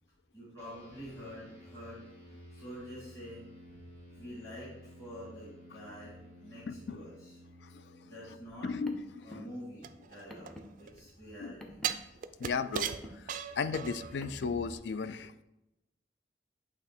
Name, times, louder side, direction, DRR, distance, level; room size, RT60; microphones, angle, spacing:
voice 1, 0.3-2.1 2.5-3.4 3.7-3.8 4.1-7.3 8.0-8.7 9.2-11.8, equal, 20° left, -8 dB, 1.8 m, -47 dB
sound 1, 0.6-10.3, equal, 40° left, 1.8 m, -54 dB
voice 2, 6.7-7.0 7.6-8.1 8.6-9.5 11.4-11.5 12.4-15.4, left 5 dB, 70° left, 12 dB, 0.4 m, -36 dB
Car, 8.5-14.7, equal, 5° left, 0.6 m, -51 dB
sound 2, 9.8-11.0 11.8-14.2 14.6-14.7, right 9 dB, 50° right, 0.3 m, -37 dB
8.1 x 3.2 x 4.3 m, 0.93 s
head